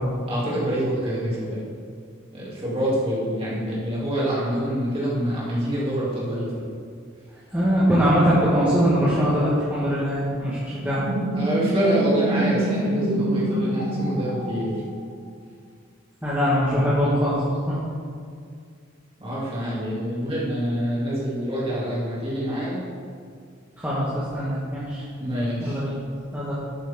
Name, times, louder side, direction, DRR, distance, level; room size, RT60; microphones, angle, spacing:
voice 1, 0.3-1.6 2.3-6.7 11.3-14.7 19.2-22.8 25.2-25.8, equal, 30° right, -7 dB, 2.9 m, -26 dB
voice 2, 7.5-11.0 16.2-17.4 17.7-17.8 23.8-25.0 25.7-26.0 26.3-26.5, equal, 10° right, -10 dB, 1.6 m, -22 dB
sound 1, 10.9-15.3, right 1 dB, 85° right, 1.1 m, -26 dB
11.5 x 8.3 x 3.7 m, 2.2 s
head